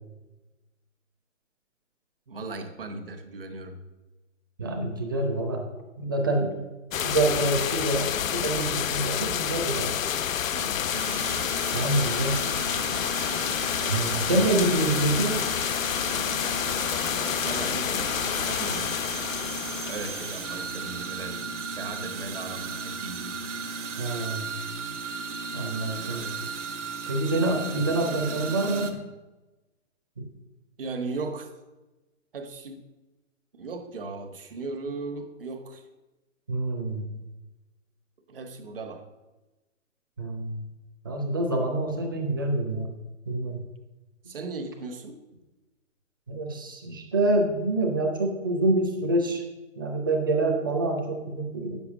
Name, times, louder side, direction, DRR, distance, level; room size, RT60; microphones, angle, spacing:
voice 1, 2.3-3.8 10.5-10.8 17.4-19.0 19.9-23.4 25.9-26.4 30.8-31.5 32.3-32.8 33.5-35.8 38.3-39.0 44.3-45.2, right 3 dB, 45° right, 5 dB, 1.4 m, -37 dB
voice 2, 4.6-5.6 6.0-6.6 7.0-10.0 11.7-12.4 13.9-15.4 24.0-24.5 25.5-26.3 27.1-28.9 30.2-30.3 36.5-37.1 40.2-40.6 41.0-42.9 43.3-43.6 46.3-49.4 49.8-51.8, right 2 dB, 15° right, 2 dB, 0.7 m, -26 dB
sound 1, 6.9-21.2, left 9 dB, 75° left, 0.6 m, -29 dB
sound 2, 10.9-28.9, right 4 dB, 60° right, 1.5 m, -35 dB
8.6 x 7.0 x 7.2 m, 1.1 s
hypercardioid pair, 175°, 40 cm